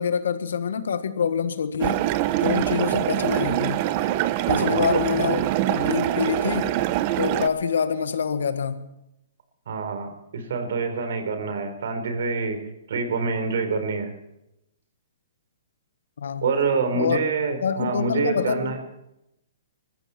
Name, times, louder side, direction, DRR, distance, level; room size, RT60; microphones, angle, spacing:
voice 1, 0.0-2.0 2.4-3.9 4.5-6.7 7.2-8.9 16.2-16.6 16.9-17.2 17.6-18.8, left 6 dB, 80° left, 1.6 m, -26 dB
sound 1, 1.8-7.5, right 14 dB, 35° right, 0.9 m, -24 dB
voice 2, 4.5-4.9 9.7-12.6 12.9-14.1 16.4-18.8, right 4 dB, 70° right, 4.1 m, -26 dB
21.0 x 14.5 x 4.4 m
hypercardioid pair, 150°, 0 cm